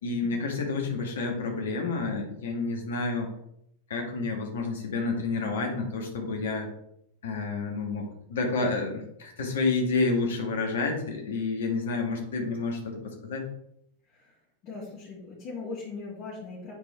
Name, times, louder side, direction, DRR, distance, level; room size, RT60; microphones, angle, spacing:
voice 1, 0.0-3.3 3.9-6.7 7.2-13.4, left 3 dB, 60° left, 1 dB, 1.9 m, -29 dB
voice 2, 14.1-14.4 14.6-16.7, left 4 dB, 40° left, -8 dB, 2.5 m, -40 dB
8.9 x 4.4 x 3.6 m, 0.75 s
figure-of-eight pair, 90°, 0 cm